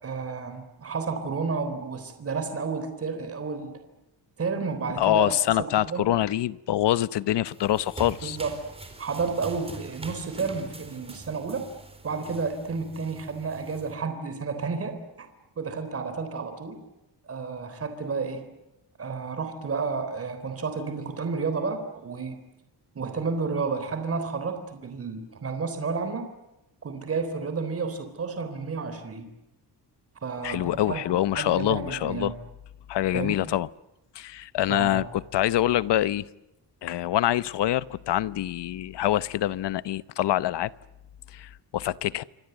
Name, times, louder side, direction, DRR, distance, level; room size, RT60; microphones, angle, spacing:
voice 1, 0.0-3.7 4.4-6.0 8.2-8.5 9.0-11.7 12.0-15.3 15.6-16.8 17.3-18.4 19.0-22.4 23.0-26.3 26.8-29.3 30.2-31.0 31.3-32.3 33.1-33.5 34.7-35.1, right 4 dB, 35° right, 3.7 m, -31 dB
voice 2, 5.0-8.4 30.4-32.3 32.9-33.7 34.1-36.2 36.8-40.7 41.3-42.2, left 13 dB, 75° left, 0.9 m, -25 dB
sound 1, 7.5-13.9, right 2 dB, 15° right, 4.0 m, -43 dB
29.0 x 25.5 x 8.0 m
wide cardioid pair, 180°, 41 cm